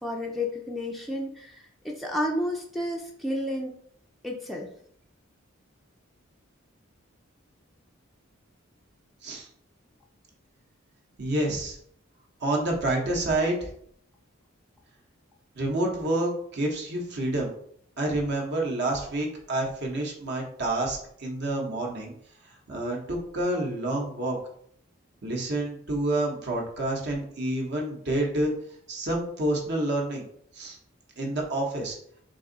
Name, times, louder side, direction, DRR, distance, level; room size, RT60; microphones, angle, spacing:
voice 1, 0.0-3.7 4.2-4.7, left 1 dB, ahead, -2 dB, 0.4 m, -31 dB
voice 2, 11.2-11.8 12.4-13.7 15.5-17.5 18.0-22.1 22.7-24.4 25.2-28.5 28.9-30.3 30.5-30.8 31.2-32.0, right 1 dB, 55° right, -1 dB, 1.0 m, -28 dB
3.9 x 2.6 x 3.9 m, 0.63 s
head